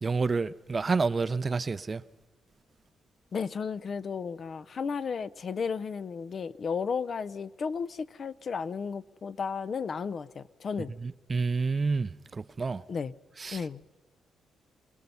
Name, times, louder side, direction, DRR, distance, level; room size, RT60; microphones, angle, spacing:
voice 1, 0.0-2.0 11.0-12.8 13.4-13.6, right 4 dB, 35° right, 0.6 m, -29 dB
voice 2, 3.3-10.9 12.9-13.1 13.5-13.8, left 5 dB, 50° left, 0.6 m, -33 dB
24.5 x 20.5 x 5.5 m
cardioid pair, 85°, 0 cm